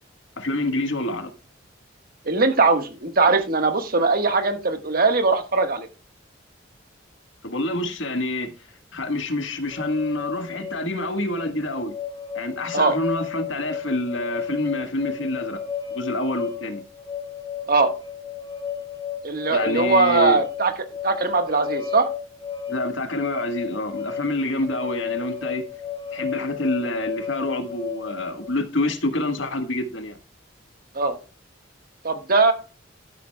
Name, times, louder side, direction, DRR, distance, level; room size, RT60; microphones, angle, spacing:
voice 1, 0.4-1.3 7.4-8.5 8.9-11.9 12.3-15.6 15.9-16.8 19.5-20.4 22.7-25.6 26.1-30.2, left 1 dB, 75° left, 1.4 m, -27 dB
voice 2, 2.2-5.9 12.7-13.0 17.7-17.9 19.2-20.7 21.0-22.1 30.9-31.2 32.0-32.5, right 3 dB, 50° right, 1.4 m, -20 dB
sound 1, 9.7-28.5, left 8 dB, 25° left, 4.5 m, -33 dB
12.0 x 10.0 x 2.2 m
head